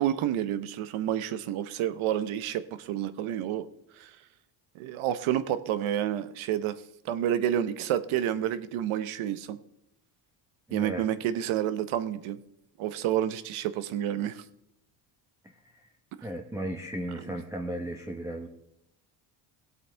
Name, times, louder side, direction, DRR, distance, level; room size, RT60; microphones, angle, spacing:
voice 1, 0.0-3.7 3.9-4.2 4.7-9.6 10.7-12.4 12.8-14.4 16.2-16.3, right 11 dB, 75° right, 14 dB, 0.9 m, -29 dB
voice 2, 10.7-11.0 15.7-15.9 16.2-18.5, right 1 dB, 5° right, 3 dB, 0.9 m, -35 dB
18.0 x 8.2 x 3.4 m, 0.79 s
cardioid pair, 110°, 49 cm